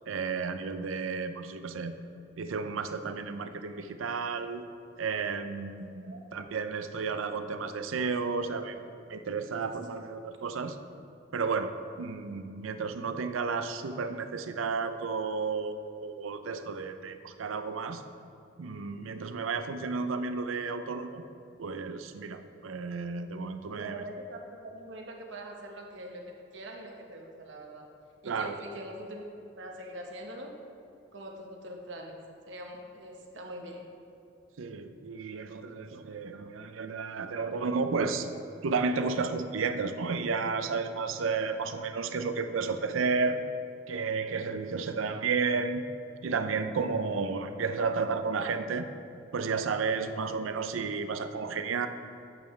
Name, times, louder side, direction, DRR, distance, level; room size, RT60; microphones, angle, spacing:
voice 1, 0.1-1.9 2.4-4.7 5.0-8.8 9.1-10.8 11.3-11.7 12.0-15.7 16.0-18.0 18.6-21.2 21.6-24.0 28.3-28.6 34.6-38.3 38.6-43.4 43.9-45.8 46.2-48.9 49.3-51.9, right 4 dB, 90° right, 9 dB, 0.5 m, -32 dB
voice 2, 23.7-27.9 28.2-29.2 29.6-30.5 31.1-32.2 32.5-33.8, right 1 dB, 65° right, 1 dB, 1.1 m, -43 dB
8.9 x 8.5 x 3.2 m, 2.6 s
head